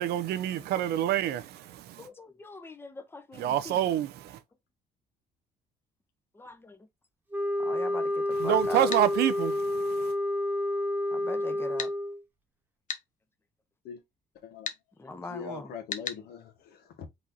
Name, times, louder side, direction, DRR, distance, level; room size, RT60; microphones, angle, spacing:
voice 1, 0.0-2.1 3.4-4.4 8.4-9.6, right 11 dB, 75° right, 0.6 m, -27 dB
voice 2, 2.0-3.8 6.4-6.9 7.6-8.9 11.1-11.9 15.0-15.7, left 3 dB, 15° left, 0.9 m, -41 dB
sound 1, 7.3-12.2, left 1 dB, 10° right, 1.3 m, -29 dB
sound 2, 8.9-9.1 11.8-12.0 12.9-13.1 14.7-14.8 15.9-16.2, left 7 dB, 50° left, 1.0 m, -34 dB
voice 3, 15.1-17.1, left 5 dB, 70° left, 1.6 m, -42 dB
4.8 x 4.1 x 2.6 m
cardioid pair, 110°, 17 cm